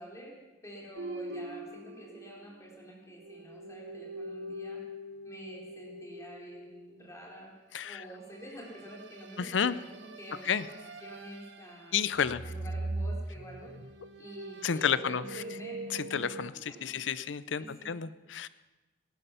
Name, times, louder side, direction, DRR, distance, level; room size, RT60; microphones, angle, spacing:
voice 1, 0.0-4.8 5.2-7.5 7.8-10.8 11.0-13.7 14.2-15.8 16.1-16.2 16.5-17.3 17.6-17.9, equal, 15° left, -2 dB, 3.5 m, -48 dB
sound 1, 1.0-2.9 3.2-7.0 8.6-11.9 12.2-16.5, right 1 dB, 70° right, 1.0 m, -42 dB
voice 2, 9.4-9.8 10.5-10.6 11.9-12.4 14.6-15.2 15.9-16.5 16.8-18.5, left 7 dB, 80° left, 16 dB, 0.5 m, -30 dB
18.5 x 11.0 x 5.7 m, 1.1 s
head